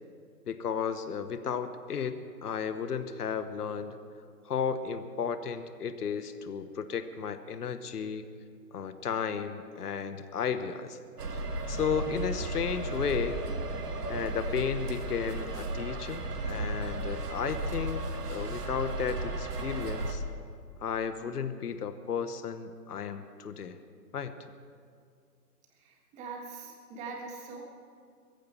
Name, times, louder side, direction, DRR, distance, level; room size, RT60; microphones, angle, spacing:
voice 1, 0.5-3.9 4.4-8.3 8.7-11.0 11.7-13.4 14.1-18.0 18.3-20.2 20.8-23.8 24.1-24.3, left 6 dB, 65° left, 11 dB, 1.2 m, -33 dB
sound 1, 11.2-20.1, right 2 dB, 70° right, 2.1 m, -34 dB
voice 2, 25.8-27.6, right 4 dB, 15° right, 0 dB, 1.6 m, -42 dB
21.0 x 15.0 x 4.5 m, 2.3 s
hypercardioid pair, 150°, 49 cm